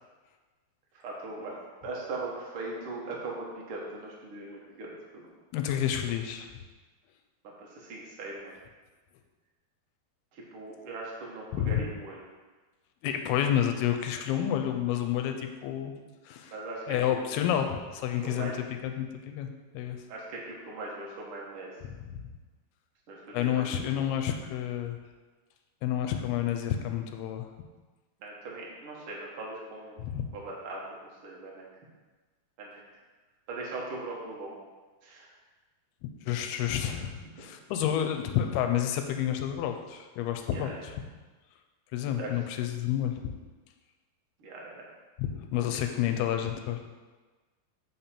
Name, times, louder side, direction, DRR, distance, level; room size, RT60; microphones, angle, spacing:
voice 1, 0.9-5.2 7.6-8.6 10.3-12.2 16.5-17.2 18.2-18.5 20.1-21.7 23.1-24.1 28.2-30.0 30.3-30.8 31.2-31.7 32.6-32.8 33.5-34.5 35.0-35.3 37.2-37.4 40.5-40.7 42.2-42.3 44.4-44.8 45.5-45.8, right 2 dB, 75° right, -3 dB, 1.2 m, -40 dB
voice 2, 5.5-6.5 11.5-11.8 13.0-16.0 16.3-16.5 16.9-18.5 18.8-19.5 19.7-20.0 22.1-22.2 23.3-25.0 25.8-27.5 30.0-30.3 36.3-40.7 41.9-43.1 45.2-46.8, left 10 dB, 85° left, 6 dB, 2.6 m, -29 dB
6.9 x 5.8 x 4.3 m, 1.3 s
omnidirectional pair, 4.5 m